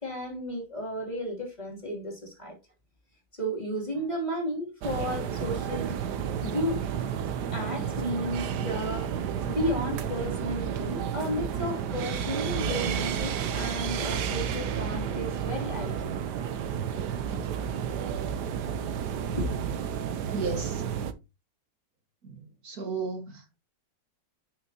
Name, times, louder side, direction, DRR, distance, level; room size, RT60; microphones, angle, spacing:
voice 1, 0.0-2.6 3.3-6.0 6.4-6.8 7.5-9.1 9.5-16.2 17.3-17.4 18.0-18.2 19.3-19.5, equal, 25° left, 3.1 m, -33 dB
sound 1, 4.8-21.1, right 8 dB, 85° right, 1.4 m, -31 dB
voice 2, 20.3-20.8 22.3-22.4 22.6-23.6, right 4 dB, 65° right, 2.3 m, -33 dB
9.2 x 6.7 x 2.9 m
omnidirectional pair, 1.7 m